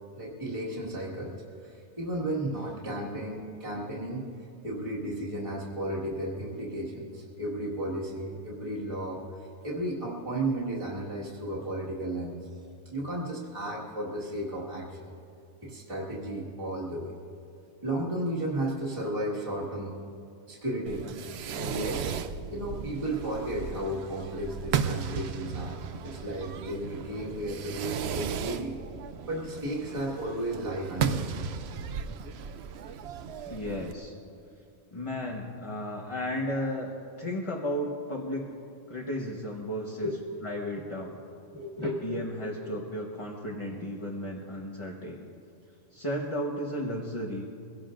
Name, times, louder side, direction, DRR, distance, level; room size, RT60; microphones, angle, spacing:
voice 1, 0.1-1.3 1.6-4.3 4.6-12.4 12.9-15.1 15.6-17.1 17.8-20.0 20.5-21.1 21.5-22.0 22.5-25.8 26.0-28.8 29.3-31.2 40.0-40.1 41.5-42.8, right 1 dB, 30° right, -6 dB, 1.9 m, -34 dB
Fireworks, 20.9-33.9, right 7 dB, 70° right, 0.9 m, -35 dB
voice 2, 33.5-34.1 34.9-36.9 37.2-38.5 38.9-40.1 40.4-41.2 41.8-45.2 45.9-47.4, equal, 30° left, -2 dB, 1.2 m, -34 dB
22.5 x 17.0 x 2.5 m, 2.4 s
omnidirectional pair, 1.2 m